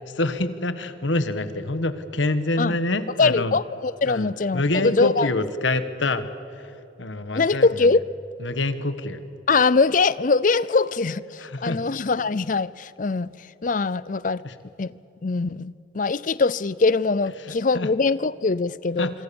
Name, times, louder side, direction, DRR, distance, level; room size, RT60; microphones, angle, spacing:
voice 1, 0.2-3.6 4.0-6.3 7.0-7.9 8.4-9.2 11.4-11.8 14.4-14.5 17.7-17.9 19.0-19.1, left 2 dB, 80° left, 1.4 m, -26 dB
voice 2, 3.2-5.3 7.3-8.0 9.5-13.3 13.6-14.4 14.8-14.9 15.2-19.1, left 4 dB, 45° left, 0.5 m, -22 dB
26.5 x 25.0 x 7.1 m
head